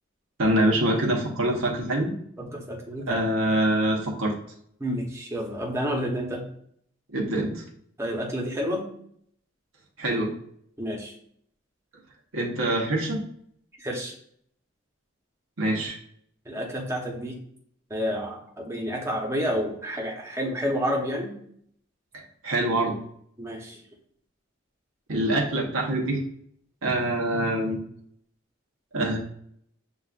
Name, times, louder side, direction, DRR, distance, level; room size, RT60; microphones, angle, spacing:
voice 1, 0.4-2.1 3.1-4.4 7.1-7.6 10.0-10.3 12.3-13.2 15.6-16.0 22.1-23.0 25.1-26.2 26.8-27.8 28.9-29.2, right 1 dB, 85° right, -1 dB, 0.9 m, -25 dB
voice 2, 2.4-3.2 4.8-6.4 8.0-8.9 10.8-11.1 13.8-14.1 16.5-17.4 17.9-21.3 23.4-23.8, equal, 15° right, -1 dB, 0.8 m, -29 dB
7.0 x 2.4 x 2.4 m, 0.66 s
head